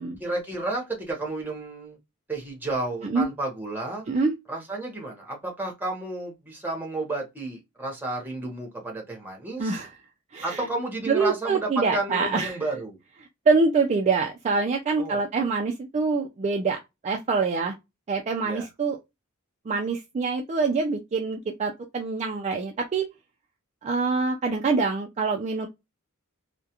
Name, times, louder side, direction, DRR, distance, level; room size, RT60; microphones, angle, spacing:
voice 1, 0.2-2.0 2.3-4.1 4.5-9.8 10.4-13.0 15.0-15.5 18.4-18.7, right 2 dB, 10° right, 0.8 m, -32 dB
voice 2, 9.6-9.9 10.3-10.6 11.1-12.6 13.5-16.8 17.0-17.7 18.1-19.0 19.7-23.1 23.8-25.7, right 4 dB, 30° right, 0.3 m, -25 dB
2.3 x 2.1 x 2.7 m
head